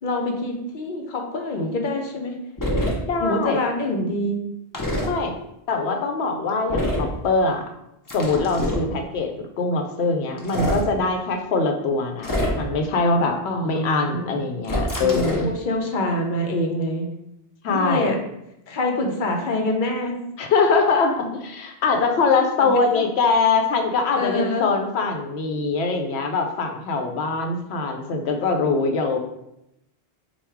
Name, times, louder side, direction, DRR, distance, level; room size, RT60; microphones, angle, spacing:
voice 1, 0.0-2.3 3.2-4.4 13.4-14.4 15.0-17.1 17.7-18.2 18.7-20.2 22.6-23.0 24.1-24.8, left 1 dB, 55° left, 2 dB, 0.8 m, -26 dB
sound 1, 2.6-2.9 4.7-5.1 6.7-7.1 8.1-8.9 10.4-10.8 12.2-12.8 14.6-15.5, equal, 25° left, 0.6 m, -25 dB
voice 2, 3.0-3.7 5.0-5.3 5.7-7.6 8.1-13.4 13.6-15.5 17.6-18.1 20.4-29.2, left 4 dB, 85° left, 4 dB, 0.9 m, -23 dB
3.5 x 2.3 x 4.4 m, 0.83 s
omnidirectional pair, 1.1 m